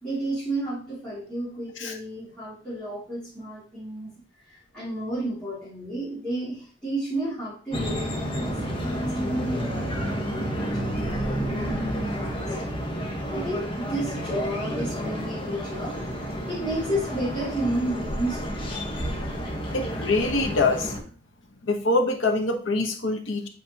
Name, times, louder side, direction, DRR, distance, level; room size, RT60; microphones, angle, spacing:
voice 1, 0.0-4.1 4.4-12.6 13.3-15.9 16.5-18.6, right 1 dB, 5° left, -12 dB, 2.4 m, -32 dB
sound 1, 7.7-21.0, equal, 30° left, 1.2 m, -30 dB
voice 2, 19.7-20.9 21.6-23.5, left 2 dB, 90° left, 4 dB, 1.1 m, -24 dB
8.1 x 4.3 x 2.9 m, 0.41 s
head